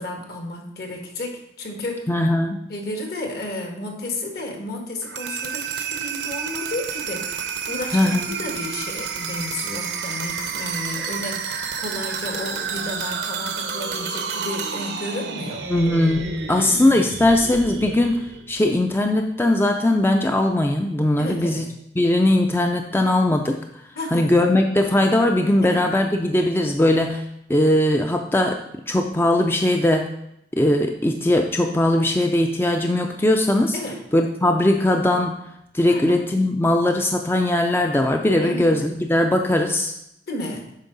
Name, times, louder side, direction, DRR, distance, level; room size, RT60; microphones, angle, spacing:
voice 1, 0.0-2.1 2.7-15.7 16.5-17.2 21.2-21.7 23.9-24.3 25.6-25.8 33.7-34.0 35.9-36.2 38.4-38.7 40.3-40.7, left 1 dB, 60° left, 2 dB, 1.6 m, -32 dB
voice 2, 2.1-2.6 7.9-8.4 15.7-21.7 22.0-23.6 24.1-28.6 28.9-30.1 30.5-33.8 34.1-35.4 35.7-39.9, left 1 dB, 15° left, 4 dB, 0.4 m, -20 dB
sound 1, 5.0-18.9, right 6 dB, 75° right, 0.7 m, -30 dB
8.3 x 5.6 x 4.0 m, 0.79 s
head